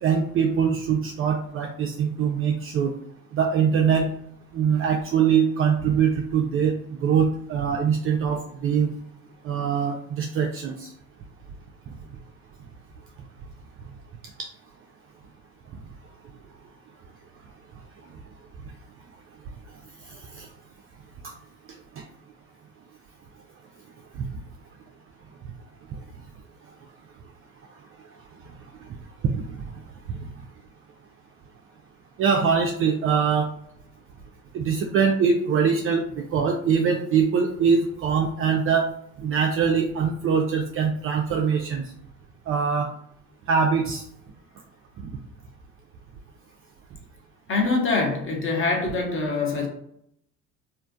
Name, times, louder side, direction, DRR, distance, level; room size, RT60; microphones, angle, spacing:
voice 1, 0.0-2.9 3.3-4.1 4.5-6.7 7.0-8.9 9.4-10.9 20.3-20.5 21.2-21.3 29.4-29.5 30.2-30.3 32.2-33.5 34.5-38.9 39.2-41.8 42.5-42.9 43.5-44.0 45.0-45.1, right 6 dB, 35° right, 2 dB, 0.4 m, -23 dB
voice 2, 47.5-49.7, left 3 dB, 30° left, 0 dB, 1.1 m, -24 dB
3.2 x 2.5 x 2.4 m, 0.70 s
hypercardioid pair, 60°, 43 cm